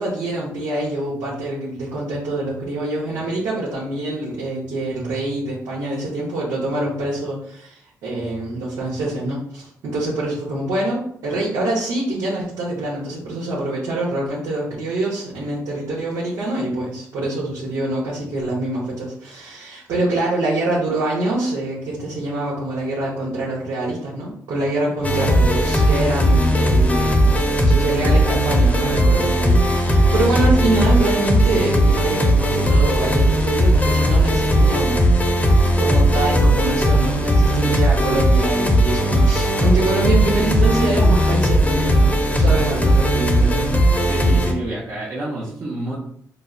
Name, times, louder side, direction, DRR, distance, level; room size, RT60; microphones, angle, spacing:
voice 1, 0.0-35.0 35.8-43.8, right 2 dB, 90° right, -6 dB, 1.0 m, -25 dB
sound 1, 25.0-44.5, right 1 dB, 20° left, 0.7 m, -17 dB
voice 2, 44.1-46.0, right 2 dB, 50° right, -5 dB, 0.8 m, -28 dB
5.1 x 2.0 x 2.4 m, 0.66 s
cardioid pair, 75°, 6 cm